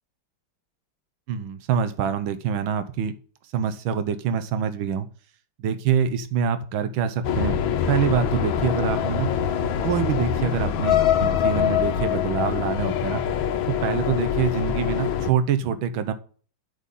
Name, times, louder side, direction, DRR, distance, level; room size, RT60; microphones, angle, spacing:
voice 1, 1.3-3.1 3.5-5.1 5.6-7.6 7.9-9.3 9.8-13.2 13.7-16.1, right 7 dB, 90° right, 10 dB, 1.7 m, -25 dB
sound 1, 7.2-15.3, left 9 dB, 80° left, 1.7 m, -24 dB
10.0 x 5.5 x 8.3 m, 0.42 s
omnidirectional pair, 2.1 m